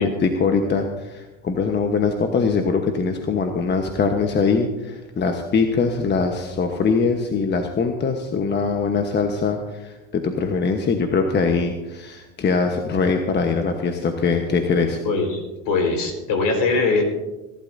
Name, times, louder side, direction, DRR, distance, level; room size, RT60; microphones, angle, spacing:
voice 1, 0.0-15.0, left 5 dB, 25° left, 5 dB, 1.1 m, -22 dB
voice 2, 15.0-17.0, left 3 dB, 55° left, 4 dB, 4.5 m, -21 dB
26.0 x 12.0 x 2.7 m, 1.1 s
hypercardioid pair, 100°, 40 cm